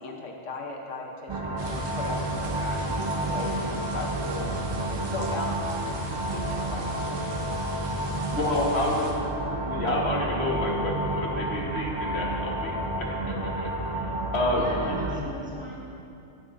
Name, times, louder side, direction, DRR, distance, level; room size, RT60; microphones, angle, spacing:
voice 1, 0.0-7.2, left 2 dB, 85° left, 1 dB, 1.2 m, -38 dB
sound 1, 1.3-15.2, right 1 dB, 35° right, 0.5 m, -30 dB
sound 2, 1.6-9.1, right 3 dB, 70° right, 1.2 m, -42 dB
voice 2, 8.3-9.1 9.6-14.6 14.9-15.3, left 1 dB, 60° left, -2 dB, 1.3 m, -29 dB
voice 3, 14.6-15.8, left 1 dB, 5° right, -7 dB, 1.4 m, -40 dB
11.0 x 9.1 x 2.5 m, 2.7 s
omnidirectional pair, 1.3 m